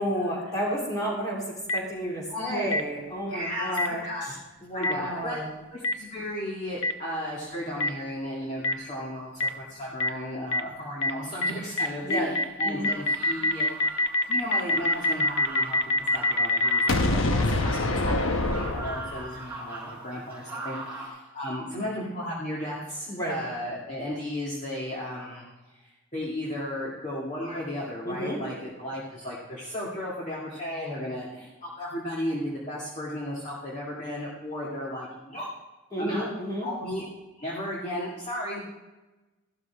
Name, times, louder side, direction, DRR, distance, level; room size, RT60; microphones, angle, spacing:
voice 1, 0.0-5.5 12.0-12.4 12.6-12.9 17.0-17.3 23.1-23.4 28.0-28.4 35.9-36.7, equal, 20° left, -3 dB, 3.6 m, -31 dB
Boom, 1.7-1.8 2.7-2.8 3.8-3.9 4.8-4.9 5.8-5.9 6.8-6.9 7.8-7.9 8.6-8.7 9.4-9.5 10.0-10.1 10.5-10.6 11.0-11.1 11.4-11.5 11.8-19.3, left 2 dB, 80° left, 1.1 m, -24 dB
voice 2, 2.3-2.7 3.2-4.3 4.7-5.4 5.7-13.7 14.0-15.8 16.1-35.5 36.0-36.2 36.6-37.1 37.4-38.7, left 1 dB, 35° left, -6 dB, 2.0 m, -35 dB
sound 1, 12.7-21.1, right 3 dB, 10° right, 4.3 m, -41 dB
14.5 x 12.0 x 3.5 m, 1.1 s
head